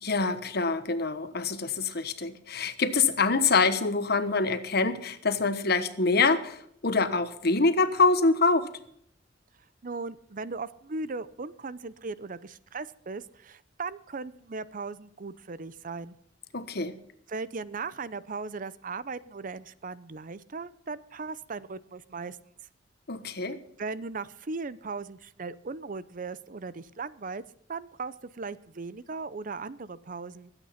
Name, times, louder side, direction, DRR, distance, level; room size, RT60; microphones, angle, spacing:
voice 1, 0.0-8.7 16.5-17.0 23.1-23.6, left 4 dB, 60° left, 11 dB, 1.2 m, -25 dB
voice 2, 9.8-16.2 17.3-22.4 23.8-27.4 27.7-30.5, right 4 dB, 45° right, 17 dB, 0.6 m, -38 dB
21.5 x 9.0 x 5.8 m, 0.68 s
head